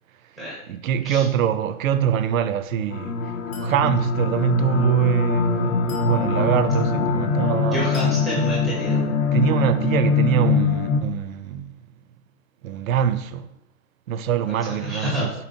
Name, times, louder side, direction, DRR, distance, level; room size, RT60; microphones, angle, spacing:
voice 1, 0.7-7.9 9.3-11.8 12.6-13.5 14.1-15.3, right 9 dB, 65° right, 0.5 m, -24 dB
sound 1, 2.9-11.0, left 4 dB, 60° left, 0.8 m, -23 dB
Chink clink, 3.5-3.9 5.9-6.2 7.9-8.3, left 4 dB, 20° left, 0.9 m, -43 dB
voice 2, 7.7-9.0 14.4-15.3, equal, ahead, 0.5 m, -28 dB
4.4 x 4.0 x 2.6 m
hypercardioid pair, 145°, 45 cm